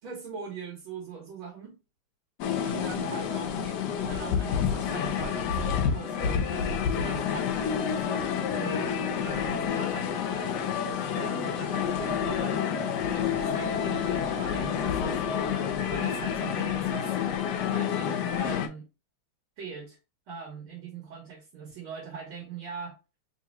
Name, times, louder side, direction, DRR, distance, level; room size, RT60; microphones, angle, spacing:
voice 1, 0.0-1.8 2.6-6.5 6.8-15.4 15.9-17.2 17.7-18.9 19.6-20.0 20.3-23.0, right 6 dB, 70° right, -1 dB, 1.8 m, -41 dB
sound 1, 2.4-18.7, left 8 dB, 75° left, 1.0 m, -29 dB
3.7 x 3.1 x 2.8 m, 0.29 s
omnidirectional pair, 2.4 m